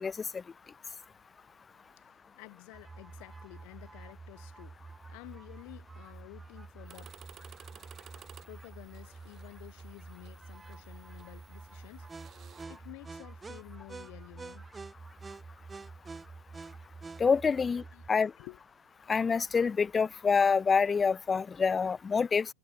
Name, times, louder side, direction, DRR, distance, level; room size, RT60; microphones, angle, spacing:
voice 1, 2.0-4.8 5.1-7.1 8.4-12.2 12.6-14.7 17.5-17.6 17.9-18.0 18.4-18.6, left 40 dB or more, 50° left, 5.1 m, -51 dB
sound 1, 2.7-18.1, right 4 dB, 15° right, 0.7 m, -48 dB
sound 2, 6.8-12.6, right 10 dB, 30° right, 7.2 m, -56 dB
voice 2, 17.2-17.8 18.1-18.3 19.1-22.5, left 5 dB, 15° left, 0.3 m, -26 dB
hypercardioid pair, 100°, 0 cm